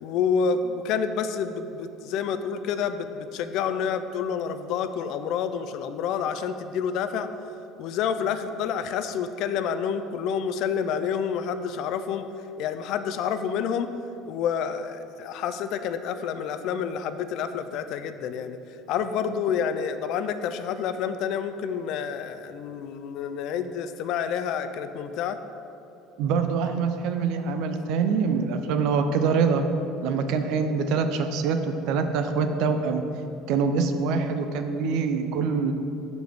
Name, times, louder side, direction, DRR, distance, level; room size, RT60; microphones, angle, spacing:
voice 1, 0.0-7.3 7.8-12.3 12.6-13.9 14.3-18.6 18.9-25.4, left 7 dB, 50° left, 10 dB, 0.3 m, -28 dB
voice 2, 26.2-29.6 30.0-33.0 33.5-35.7, right 5 dB, 60° right, 7 dB, 0.5 m, -25 dB
11.0 x 4.0 x 3.5 m, 2.9 s
cardioid pair, 170°, 0 cm